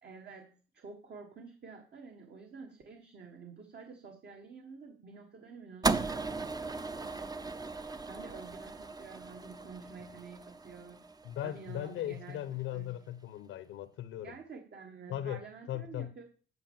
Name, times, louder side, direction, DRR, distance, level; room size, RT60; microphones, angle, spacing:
voice 1, 0.0-11.0 11.4-12.4 12.7-12.9 14.2-16.2, right 5 dB, 55° right, 1.7 m, -50 dB
sound 1, 5.8-12.2, right 3 dB, 20° right, 0.6 m, -37 dB
voice 2, 11.2-14.4 15.1-15.4 15.7-16.1, left 12 dB, 85° left, 0.9 m, -38 dB
9.9 x 5.6 x 7.1 m
cardioid pair, 90°, 20 cm